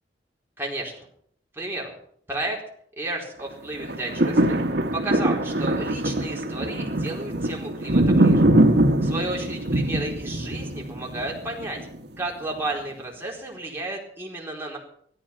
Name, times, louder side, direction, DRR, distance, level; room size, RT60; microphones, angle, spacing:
voice 1, 0.6-1.1 1.5-1.9 2.3-2.6 3.0-4.6 4.9-8.5 9.0-11.8 12.2-14.8, right 2 dB, 15° right, -2 dB, 4.3 m, -32 dB
sound 1, 3.8-12.0 12.6-12.7, right 1 dB, 65° right, 1.6 m, -22 dB
16.5 x 14.0 x 5.9 m, 0.64 s
head